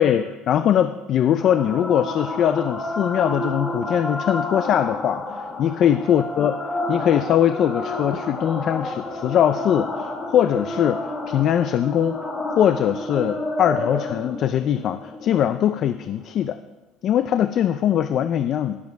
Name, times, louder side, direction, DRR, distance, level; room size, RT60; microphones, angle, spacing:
voice 1, 0.0-6.6 6.9-12.3 12.6-16.6 17.0-18.8, left 10 dB, 45° left, 11 dB, 0.4 m, -21 dB
sound 1, 1.4-16.4, left 2 dB, 20° left, 1.5 m, -30 dB
18.5 x 7.5 x 4.6 m, 1.1 s
cardioid pair, 150°, 0 cm